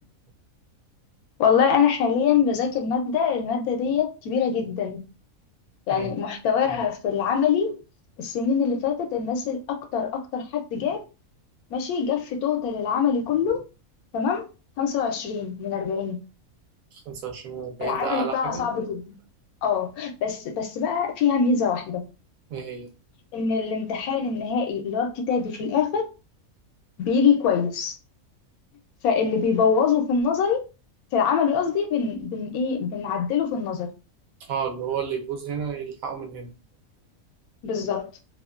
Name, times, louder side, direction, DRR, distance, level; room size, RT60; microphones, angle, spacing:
voice 1, 1.4-5.0 5.9-7.8 8.2-11.0 11.7-13.6 14.1-14.5 14.8-16.2 17.8-19.0 19.6-22.0 23.3-26.1 27.0-27.9 29.0-30.6 31.1-33.9 37.6-38.1, left 6 dB, 85° left, 1.1 m, -24 dB
voice 2, 16.9-18.7 22.5-22.9 34.5-36.5, right 7 dB, 75° right, 1.1 m, -31 dB
2.8 x 2.1 x 2.3 m
omnidirectional pair, 1.5 m